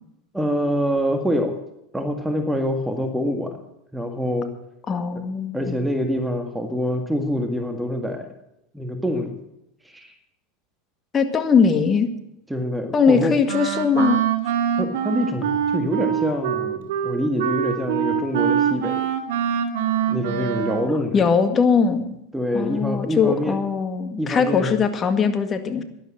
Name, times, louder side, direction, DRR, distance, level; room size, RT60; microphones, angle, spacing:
voice 1, 0.3-1.5 1.9-3.6 3.9-4.5 5.5-8.3 8.7-9.4 9.8-10.1 12.5-13.4 14.8-19.1 20.1-21.2 22.3-23.6 24.2-24.8, equal, 5° right, 6 dB, 1.8 m, -25 dB
voice 2, 4.9-5.8 11.1-12.1 12.9-14.2 21.1-22.2 22.5-25.8, left 5 dB, 30° left, 8 dB, 1.9 m, -20 dB
Wind instrument woodwind instrument, 13.5-21.0, right 9 dB, 75° right, 2.1 m, -24 dB
12.5 x 11.0 x 7.6 m, 0.85 s
hypercardioid pair, 110°, 0 cm